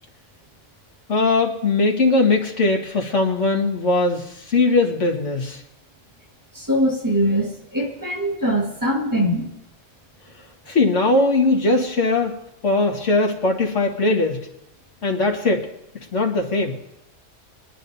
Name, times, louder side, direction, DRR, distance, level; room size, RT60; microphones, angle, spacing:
voice 1, 1.1-5.6 10.7-12.4 12.6-14.4 15.0-15.7 16.1-16.8, left 3 dB, 75° left, 0 dB, 2.0 m, -20 dB
voice 2, 6.5-9.5, equal, 15° right, -1 dB, 1.8 m, -22 dB
23.5 x 10.5 x 2.7 m, 0.85 s
omnidirectional pair, 1.2 m